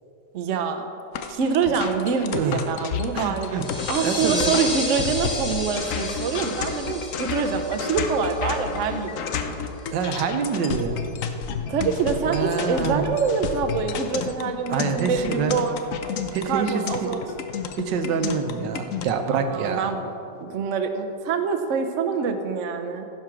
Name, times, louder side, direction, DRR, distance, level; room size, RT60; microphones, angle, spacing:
voice 1, 0.3-0.8 1.3-3.6 3.9-9.6 11.7-15.8 16.4-17.2 19.3-20.1 20.4-23.1, right 5 dB, 55° right, 6 dB, 0.9 m, -25 dB
sound 1, 1.1-19.1, left 6 dB, 60° left, 0.9 m, -31 dB
voice 2, 2.3-2.6 3.1-3.7 4.0-4.5 9.9-11.0 12.3-13.0 14.7-15.6 16.3-17.1 17.8-19.9, right 6 dB, 80° right, 7 dB, 1.5 m, -26 dB
sound 2, 3.6-8.9, left 2 dB, 25° left, 1.6 m, -32 dB
15.0 x 5.8 x 6.0 m, 2.7 s
omnidirectional pair, 1.9 m